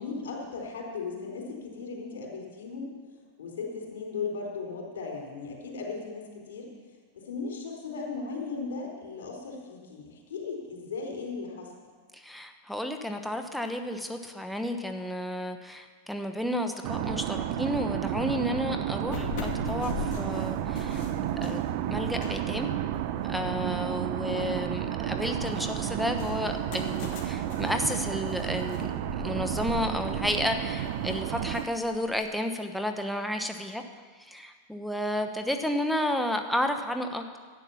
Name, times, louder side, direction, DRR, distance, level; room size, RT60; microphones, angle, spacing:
voice 1, 0.0-2.9 3.4-6.7 7.1-11.7, left 4 dB, 85° left, 0 dB, 3.9 m, -37 dB
voice 2, 12.1-21.1 21.4-21.6 21.9-22.7 23.2-28.9 29.2-33.8 34.2-37.4, left 1 dB, ahead, 5 dB, 1.0 m, -32 dB
sound 1, 16.8-31.7, right 11 dB, 60° right, 0.6 m, -31 dB
sound 2, 19.1-24.2 24.6-32.2, left 7 dB, 55° left, 2.4 m, -41 dB
11.0 x 9.0 x 7.1 m, 1.5 s
hypercardioid pair, 120°, 0 cm